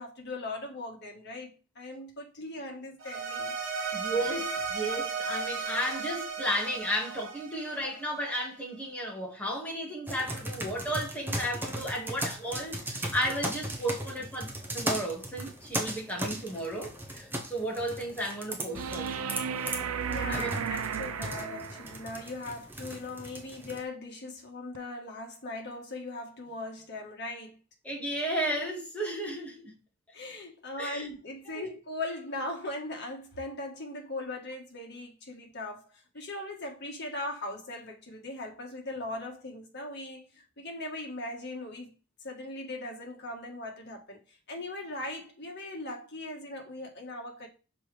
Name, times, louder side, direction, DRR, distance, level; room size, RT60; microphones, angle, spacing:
voice 1, 0.0-4.1 14.0-14.1 20.1-27.6 30.1-41.9 42.2-47.5, left 2 dB, 55° left, 1.6 m, -39 dB
sound 1, 3.0-8.3, right 5 dB, 60° right, 1.4 m, -35 dB
voice 2, 3.9-14.5 14.7-19.1 20.3-20.5 27.8-29.7 30.8-31.1 31.6-31.7, equal, 5° left, 2.0 m, -33 dB
sound 2, 10.1-23.8, right 1 dB, 10° right, 0.9 m, -37 dB
sound 3, 18.7-22.1 24.7-24.8, right 7 dB, 85° right, 0.5 m, -34 dB
5.9 x 4.7 x 3.4 m
head